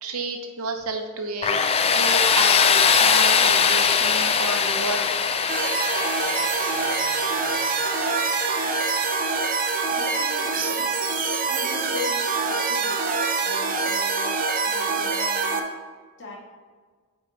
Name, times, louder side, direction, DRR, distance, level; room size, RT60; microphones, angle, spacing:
voice 1, 0.0-1.7 2.0-5.1, right 3 dB, 70° right, 4 dB, 0.9 m, -31 dB
Tools, 1.4-10.2, left 6 dB, 30° left, 0.4 m, -22 dB
sound 1, 5.5-15.6, right 4 dB, 40° right, 0.7 m, -25 dB
voice 2, 9.9-10.9 11.4-13.1 13.4-15.6 16.2-16.4, left 4 dB, 55° left, -5 dB, 2.0 m, -39 dB
8.8 x 4.0 x 3.9 m, 1.5 s
head